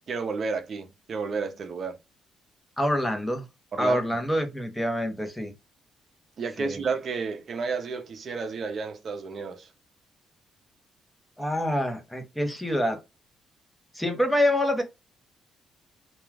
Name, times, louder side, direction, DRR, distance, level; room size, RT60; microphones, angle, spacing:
voice 1, 0.1-2.0 3.7-4.0 6.4-9.7, right 4 dB, 50° right, 0.6 m, -31 dB
voice 2, 2.8-3.4 3.8-5.5 6.6-6.8 11.4-13.0 13.9-14.8, left 1 dB, 5° left, 0.8 m, -26 dB
2.3 x 2.3 x 3.2 m
cardioid pair, 90°, 0 cm